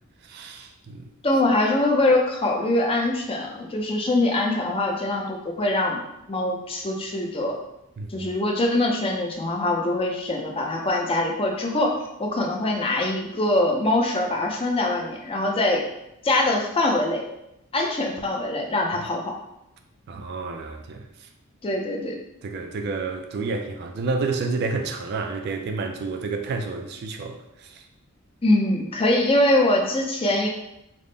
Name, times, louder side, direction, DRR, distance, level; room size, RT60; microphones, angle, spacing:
voice 1, 0.3-1.0 8.0-8.3 20.1-21.0 22.4-27.4, right 4 dB, 50° right, 5 dB, 0.3 m, -29 dB
voice 2, 1.2-6.0 6.3-7.5 8.1-11.9 12.2-15.8 16.2-17.2 17.7-19.3 21.6-22.2 28.4-30.5, left 2 dB, 25° left, 0 dB, 0.4 m, -23 dB
3.5 x 2.1 x 3.8 m, 0.85 s
head